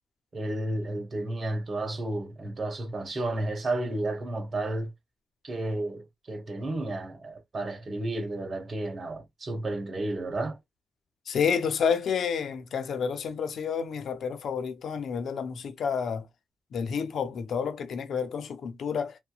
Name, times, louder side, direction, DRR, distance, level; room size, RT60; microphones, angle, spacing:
voice 1, 0.3-4.9 5.4-10.6, right 2 dB, 55° right, 1.1 m, -32 dB
voice 2, 11.3-16.3 16.7-19.2, left 6 dB, 75° left, 0.5 m, -29 dB
2.7 x 2.1 x 2.3 m
supercardioid pair, 55°, 0 cm